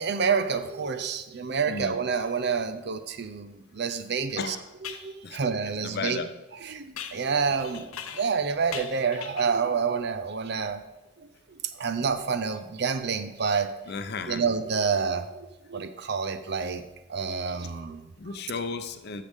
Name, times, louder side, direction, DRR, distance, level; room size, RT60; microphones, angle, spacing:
voice 1, 0.0-4.6 5.0-6.2 6.6-10.8 11.2-13.7 14.3-16.8 17.1-18.1, right 5 dB, 50° right, 10 dB, 0.6 m, -28 dB
voice 2, 1.7-2.0 4.4-4.7 5.2-5.4 5.7-6.3 13.9-14.4 18.2-19.2, left 4 dB, 50° left, 9 dB, 0.6 m, -34 dB
sound 1, 3.9-4.0 4.8-5.1 7.0-8.4 8.7-9.6, left 9 dB, 90° left, 0.7 m, -40 dB
13.5 x 6.5 x 3.6 m, 1.0 s
head